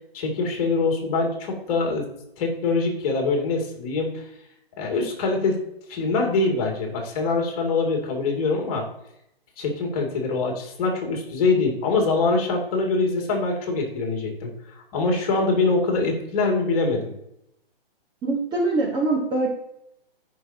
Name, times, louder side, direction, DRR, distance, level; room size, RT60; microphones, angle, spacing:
voice 1, 0.1-2.0 2.4-4.2 4.8-5.6 5.9-8.8 9.6-14.5 14.9-17.1, left 3 dB, 40° left, 2 dB, 2.4 m, -24 dB
voice 2, 18.2-19.5, right 2 dB, 15° right, -2 dB, 1.2 m, -23 dB
14.0 x 5.5 x 2.8 m, 0.80 s
hypercardioid pair, 140°, 30 cm